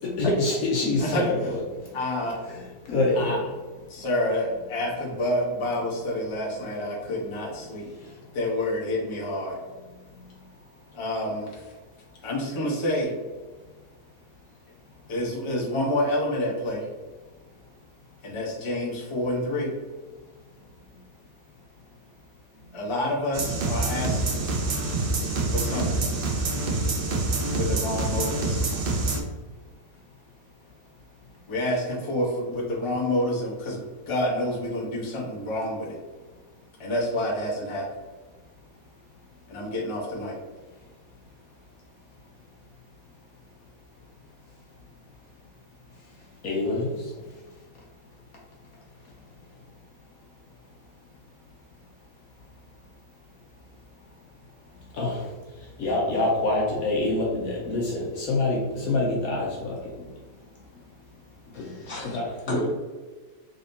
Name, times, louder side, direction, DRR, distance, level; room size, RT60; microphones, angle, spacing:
voice 1, 0.1-1.5 2.9-3.3 46.4-46.9 55.0-55.2 55.8-59.8 61.6-61.7 62.1-62.3, left 2 dB, 70° left, -2 dB, 1.1 m, -25 dB
voice 2, 1.0-1.5 1.9-2.4 3.1-3.4 3.9-7.9 8.3-9.6 10.9-11.7 12.2-13.1 15.1-16.9 18.2-19.7 22.7-24.4 25.5-26.1 27.5-28.6 31.5-36.0 36.8-37.9 39.5-40.4, left 1 dB, 25° left, -4 dB, 0.7 m, -28 dB
sound 1, 23.3-29.2, right 2 dB, 65° right, 0.5 m, -26 dB
voice 3, 61.5-62.7, left 1 dB, 50° left, -4 dB, 1.3 m, -32 dB
3.8 x 3.3 x 2.7 m, 1.3 s
omnidirectional pair, 1.7 m